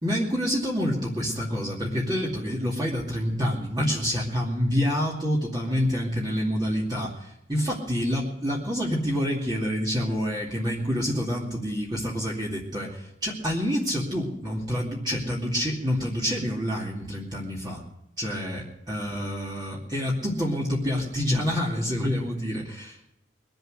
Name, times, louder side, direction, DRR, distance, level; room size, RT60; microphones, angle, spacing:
voice 1, 0.0-17.8 18.2-23.1, equal, 20° right, -5 dB, 2.5 m, -27 dB
22.5 x 7.9 x 6.4 m, 0.82 s
head